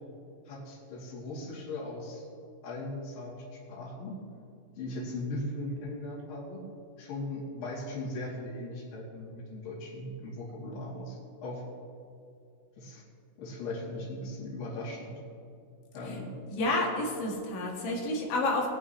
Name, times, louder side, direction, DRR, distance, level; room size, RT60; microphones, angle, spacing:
voice 1, 0.5-2.2 2.6-4.2 4.8-6.7 7.0-11.6 12.8-13.0 13.4-15.2 15.9-16.3, left 1 dB, 50° left, -11 dB, 4.4 m, -38 dB
voice 2, 16.5-18.7, left 2 dB, 75° left, -1 dB, 4.3 m, -30 dB
21.0 x 10.0 x 3.2 m, 2.6 s
omnidirectional pair, 5.4 m